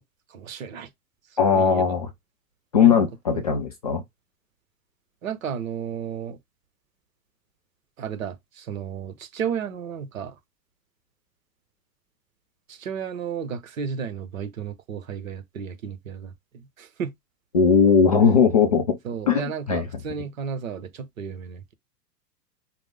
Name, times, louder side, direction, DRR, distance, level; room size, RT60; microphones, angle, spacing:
voice 1, 0.3-0.9 1.5-2.0 2.8-3.4 5.2-6.4 8.0-10.4 12.7-17.1 19.0-21.7, right 7 dB, 55° right, 0.9 m, -33 dB
voice 2, 1.4-2.1 2.7-4.0 17.5-19.0 19.3-19.4 19.7-19.8, left 6 dB, 25° left, 0.4 m, -18 dB
5.0 x 2.1 x 3.6 m
figure-of-eight pair, 110°, 50 cm